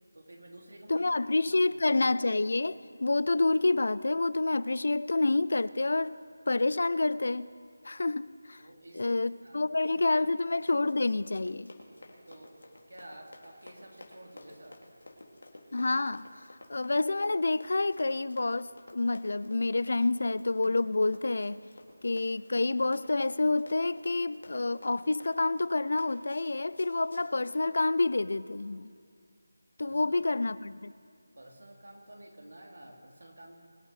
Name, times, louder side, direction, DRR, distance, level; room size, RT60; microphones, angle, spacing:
voice 1, 0.1-1.7 8.6-10.2 12.3-14.8 29.8-30.2 31.3-33.5, right 1 dB, 90° right, 0 dB, 2.9 m, -51 dB
voice 2, 0.9-6.2 6.5-7.5 7.8-8.6 8.9-11.7 15.7-16.3 16.7-21.6 22.0-28.9 29.8-30.9, left 2 dB, 55° left, 18 dB, 0.4 m, -28 dB
Run, 10.4-27.6, left 1 dB, 90° left, 2.7 m, -53 dB
22.5 x 9.1 x 4.9 m, 2.4 s
figure-of-eight pair, 175°, 0 cm